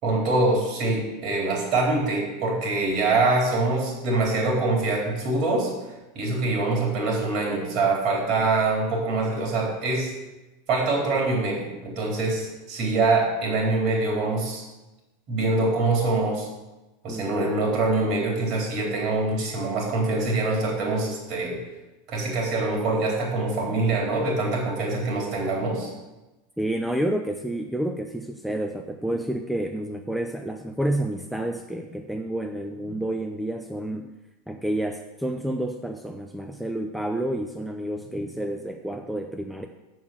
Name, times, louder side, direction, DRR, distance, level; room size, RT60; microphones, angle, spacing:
voice 1, 0.0-5.7 6.1-10.1 10.7-14.6 15.3-16.5 17.0-21.6 22.1-25.9, right 3 dB, 50° right, -2 dB, 3.9 m, -24 dB
voice 2, 17.1-17.5 26.6-34.1 34.5-39.7, right 1 dB, ahead, 4 dB, 0.6 m, -29 dB
7.2 x 6.2 x 7.4 m, 1.1 s
figure-of-eight pair, 85°, 0 cm